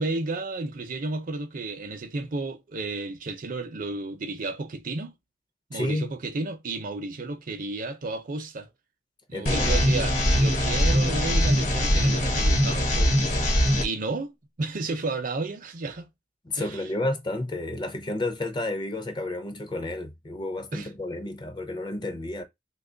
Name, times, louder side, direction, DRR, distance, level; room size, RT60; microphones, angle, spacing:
voice 1, 0.0-5.1 5.7-8.7 9.3-13.2 13.8-16.1 16.6-16.8 20.7-20.9, right 3 dB, 50° right, 0.6 m, -32 dB
voice 2, 5.7-6.1 9.3-9.8 16.5-22.4, left 1 dB, 25° left, 0.6 m, -31 dB
sound 1, 9.5-13.8, equal, 45° left, 1.1 m, -22 dB
2.9 x 2.3 x 3.8 m
head